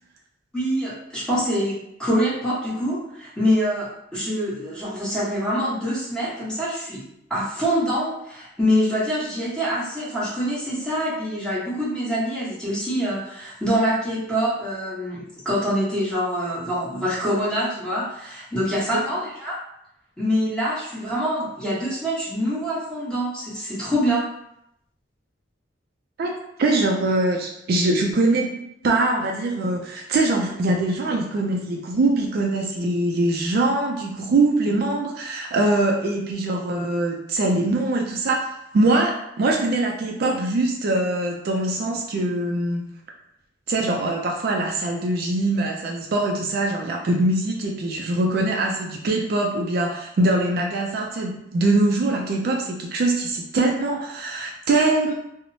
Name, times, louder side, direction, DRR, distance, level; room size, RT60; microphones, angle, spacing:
voice 1, 0.5-3.9 4.1-7.0 7.3-19.6 20.2-24.3, equal, 5° left, -10 dB, 1.0 m, -25 dB
voice 2, 26.6-42.9 43.7-55.1, right 2 dB, 55° right, 1 dB, 0.3 m, -23 dB
3.0 x 2.0 x 2.6 m, 0.78 s
head